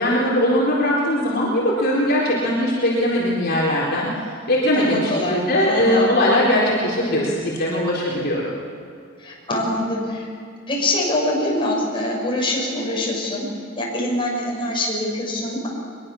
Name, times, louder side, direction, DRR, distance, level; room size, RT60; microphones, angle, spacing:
voice 1, 0.0-4.1 4.5-8.4, left 1 dB, 50° left, -5 dB, 4.1 m, -20 dB
voice 2, 4.7-6.1 9.2-10.3 10.7-13.5 13.8-15.7, left 1 dB, 25° left, -3 dB, 6.6 m, -24 dB
23.0 x 22.5 x 7.1 m, 2.3 s
head